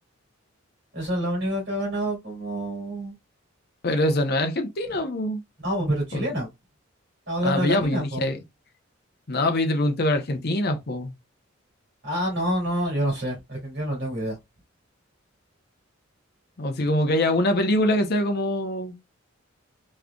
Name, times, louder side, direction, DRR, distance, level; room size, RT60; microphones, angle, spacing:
voice 1, 0.9-3.1 5.6-6.5 7.3-8.2 12.0-14.4, right 1 dB, 55° right, 2.4 m, -27 dB
voice 2, 3.8-5.4 6.1-6.3 7.4-8.4 9.3-11.1 16.6-19.0, left 1 dB, 50° left, 0.8 m, -24 dB
3.7 x 3.1 x 2.3 m
head